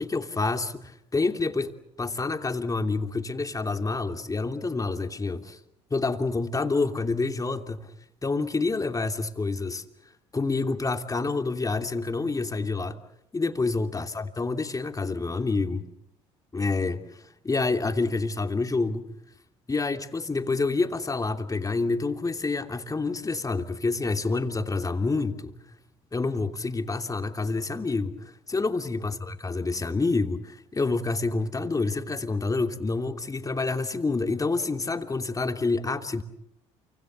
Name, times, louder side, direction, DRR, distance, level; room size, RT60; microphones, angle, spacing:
voice 1, 0.0-1.7 2.0-5.6 5.9-7.9 8.2-9.8 10.3-13.0 13.3-15.9 16.5-17.1 17.4-19.1 19.7-25.6 26.1-36.2, left 3 dB, 25° left, 3.0 m, -28 dB
28.5 x 25.5 x 6.9 m
supercardioid pair, 65°, 14 cm